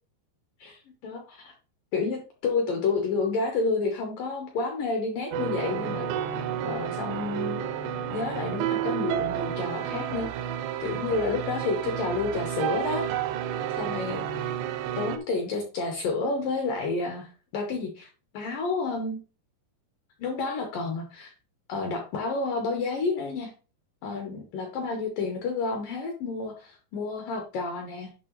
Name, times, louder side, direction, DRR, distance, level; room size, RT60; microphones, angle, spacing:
voice 1, 0.6-1.5 1.9-6.1 6.3-7.7 8.1-10.3 10.8-13.1 13.8-14.5 15.0-18.1 18.3-19.2 20.2-21.3 21.7-23.5 24.0-28.1, left 4 dB, 70° left, 3 dB, 2.1 m, -30 dB
sound 1, 5.3-15.2, right 9 dB, 85° right, 2.8 m, -31 dB
9.9 x 5.5 x 3.1 m, 0.35 s
omnidirectional pair, 5.1 m